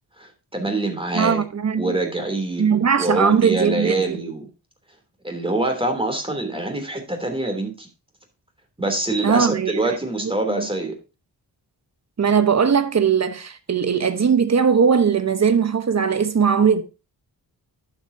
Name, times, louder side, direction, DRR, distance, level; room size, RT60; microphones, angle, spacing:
voice 1, 0.2-1.4 1.8-4.5 5.2-7.9 8.8-11.0, right 2 dB, 15° right, 3.1 m, -25 dB
voice 2, 1.1-1.9 2.6-4.2 9.2-9.8 10.2-10.7 12.2-16.8, right 6 dB, 40° right, 1.2 m, -19 dB
11.5 x 7.8 x 2.8 m
cardioid pair, 100°, 41 cm